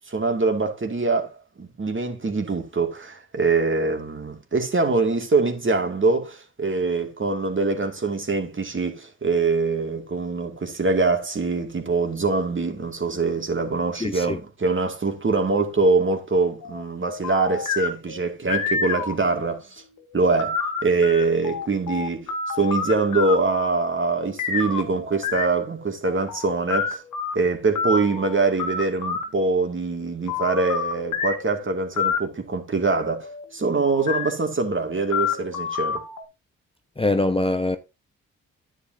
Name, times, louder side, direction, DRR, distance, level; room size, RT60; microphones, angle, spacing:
voice 1, 0.1-1.3 1.6-19.8 20.1-27.0 27.3-36.0, right 3 dB, 40° right, 2.5 m, -24 dB
voice 2, 14.0-14.4 37.0-37.8, left 2 dB, 15° left, 0.9 m, -23 dB
sound 1, 16.6-19.6 20.0-23.5 24.4-27.3 27.7-29.2 30.3-31.5 32.0-32.2 33.2-33.4 33.9-34.3 34.7-36.2, left 6 dB, 80° left, 1.8 m, -28 dB
9.9 x 8.0 x 2.8 m
supercardioid pair, 50°, 31 cm